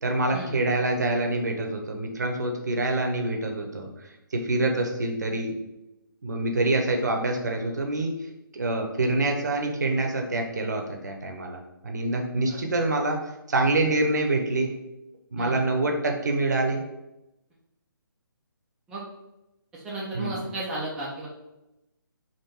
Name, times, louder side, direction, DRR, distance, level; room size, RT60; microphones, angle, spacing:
voice 1, 0.0-5.6 6.2-8.1 8.5-14.7 15.3-16.8 20.1-20.4, right 2 dB, 50° right, 4 dB, 0.7 m, -26 dB
voice 2, 19.7-21.3, right 2 dB, 5° right, -7 dB, 0.4 m, -34 dB
3.6 x 2.6 x 4.3 m, 0.93 s
figure-of-eight pair, 140°, 12 cm